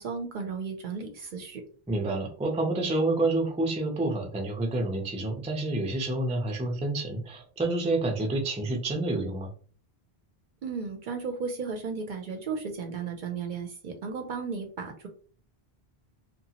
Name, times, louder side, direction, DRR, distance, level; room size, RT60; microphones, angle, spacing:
voice 1, 0.0-1.6 10.6-15.1, right 5 dB, 60° right, 4 dB, 0.6 m, -34 dB
voice 2, 1.9-9.5, right 2 dB, 10° right, 2 dB, 0.3 m, -28 dB
2.8 x 2.3 x 2.8 m, 0.41 s
omnidirectional pair, 1.1 m